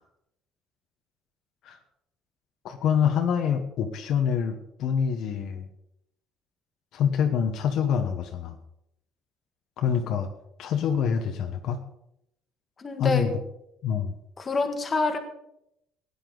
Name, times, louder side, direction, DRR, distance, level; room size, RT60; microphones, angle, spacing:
voice 1, 2.6-5.7 6.9-8.6 9.8-10.3 10.6-11.8 13.0-13.3 13.8-14.1, left 7 dB, 60° left, 5 dB, 1.1 m, -26 dB
voice 2, 12.8-13.3 14.4-15.2, left 3 dB, 25° left, 5 dB, 1.6 m, -26 dB
17.0 x 9.9 x 3.9 m, 0.79 s
cardioid pair, 155°, 0 cm